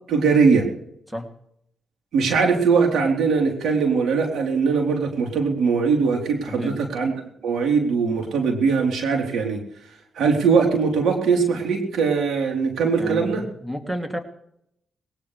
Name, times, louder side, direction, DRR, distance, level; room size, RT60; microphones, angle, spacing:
voice 1, 0.1-0.7 2.1-7.1 7.4-9.6 10.2-13.4, right 5 dB, 80° right, 1 dB, 3.7 m, -21 dB
voice 2, 13.0-14.2, equal, 10° right, 4 dB, 2.7 m, -30 dB
20.5 x 19.5 x 3.4 m, 0.75 s
cardioid pair, 60°, 0 cm